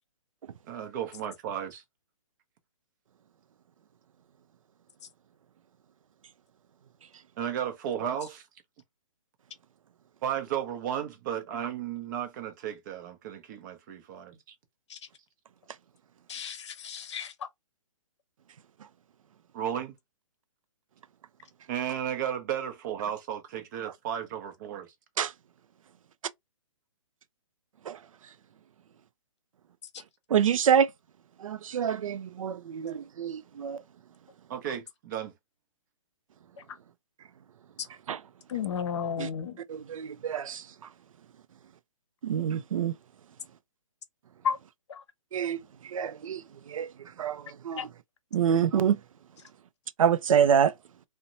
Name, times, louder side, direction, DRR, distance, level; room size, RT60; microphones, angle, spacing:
voice 1, 0.7-1.8 7.4-8.4 10.2-14.5 19.5-19.9 21.7-24.9 34.5-35.3, right 9 dB, 35° right, 0.6 m, -34 dB
voice 2, 16.3-17.3 38.5-39.6 44.4-44.6 44.9-45.0 47.8-47.9, left 7 dB, 55° left, 0.7 m, -32 dB
voice 3, 30.3-30.9 31.4-33.8 38.1-38.2 39.2-39.3 39.7-40.6 42.2-42.9 45.3-45.6 45.9-46.4 46.7-46.9 47.2-47.8 48.3-49.0 50.0-50.7, right 8 dB, 75° right, 0.4 m, -26 dB
2.7 x 2.1 x 2.6 m
hypercardioid pair, 140°, 17 cm